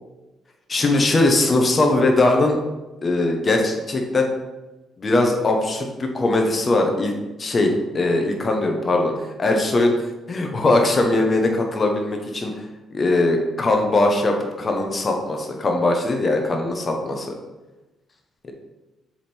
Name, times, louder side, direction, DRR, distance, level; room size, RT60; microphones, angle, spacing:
voice 1, 0.7-2.6 3.0-4.3 5.0-7.1 7.4-9.1 9.4-10.0 10.3-12.5 12.9-17.4 18.4-18.5, left 2 dB, 35° left, 2 dB, 1.1 m, -20 dB
7.3 x 3.7 x 4.4 m, 1.1 s
cardioid pair, 90°, 0 cm